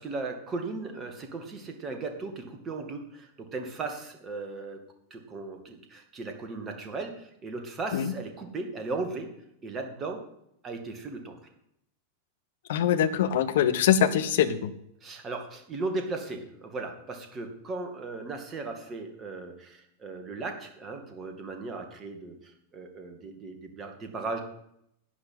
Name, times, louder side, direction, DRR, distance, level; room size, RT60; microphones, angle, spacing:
voice 1, 0.0-4.8 5.1-9.3 9.6-10.2 10.6-11.4 15.0-24.4, right 3 dB, 25° right, 5 dB, 2.2 m, -37 dB
voice 2, 12.7-14.7, left 9 dB, 55° left, 11 dB, 1.0 m, -23 dB
11.0 x 9.7 x 5.8 m, 0.77 s
figure-of-eight pair, 90°, 0 cm